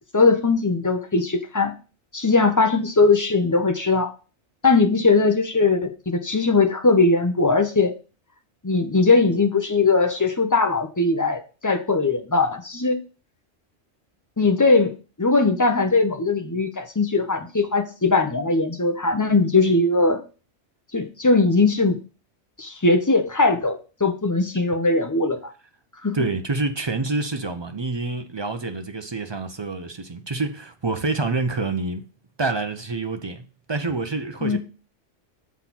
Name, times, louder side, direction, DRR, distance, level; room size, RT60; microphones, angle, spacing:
voice 1, 0.1-1.7 2.1-4.1 4.6-7.9 8.6-13.0 14.4-20.2 20.9-22.0 22.6-25.5 26.0-26.2 34.4-34.6, left 3 dB, 20° left, 0.7 m, -20 dB
voice 2, 26.1-32.0 32.4-34.6, right 3 dB, 35° right, 0.4 m, -27 dB
7.3 x 4.2 x 5.8 m
omnidirectional pair, 1.3 m